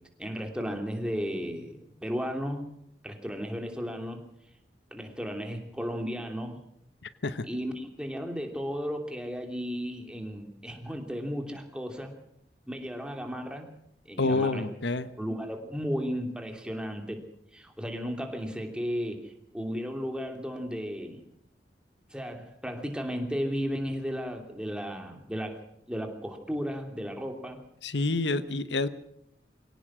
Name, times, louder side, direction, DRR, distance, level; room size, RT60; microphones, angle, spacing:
voice 1, 0.2-2.6 3.0-4.2 4.9-6.6 7.4-12.1 12.7-13.7 14.0-14.7 15.2-17.2 17.5-21.2 22.1-25.6 25.9-27.6, equal, 5° right, 3 dB, 2.9 m, -34 dB
voice 2, 14.2-15.1 27.8-28.9, left 3 dB, 85° left, 13 dB, 1.0 m, -28 dB
23.5 x 17.5 x 6.3 m, 0.73 s
head